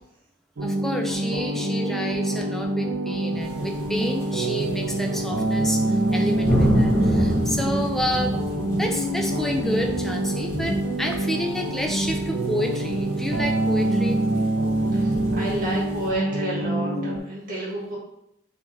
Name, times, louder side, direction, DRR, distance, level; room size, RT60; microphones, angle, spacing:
voice 1, 0.6-8.4 8.8-14.2, equal, ahead, 2 dB, 0.3 m, -29 dB
sound 1, 0.6-17.2, right 1 dB, 70° right, 0.5 m, -25 dB
sound 2, 3.4-5.1 5.4-16.1, equal, 15° left, 1.2 m, -30 dB
voice 2, 14.9-18.0, right 1 dB, 45° right, -5 dB, 1.2 m, -30 dB
3.0 x 2.9 x 3.5 m, 0.78 s
head